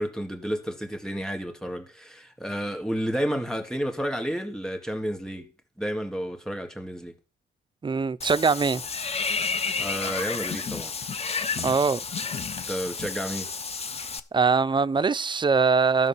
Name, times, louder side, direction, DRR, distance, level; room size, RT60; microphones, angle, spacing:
voice 1, 0.0-5.5 5.8-7.1 9.8-10.9 12.7-13.5, equal, 5° left, 2.1 m, -31 dB
voice 2, 7.8-8.8 11.6-12.0 14.3-16.1, right 5 dB, 25° right, 0.5 m, -22 dB
Water / Bathtub (filling or washing), 8.2-14.2, left 5 dB, 30° left, 0.8 m, -31 dB
12.0 x 5.9 x 6.0 m
cardioid pair, 90°, 20 cm